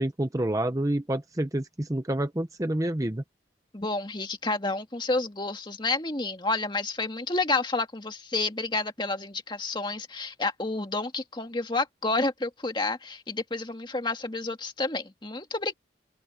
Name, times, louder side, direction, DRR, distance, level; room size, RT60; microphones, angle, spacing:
voice 1, 0.0-3.2, right 1 dB, 20° right, 0.8 m, -28 dB
voice 2, 3.7-15.7, left 3 dB, 25° left, 2.0 m, -30 dB
open air
head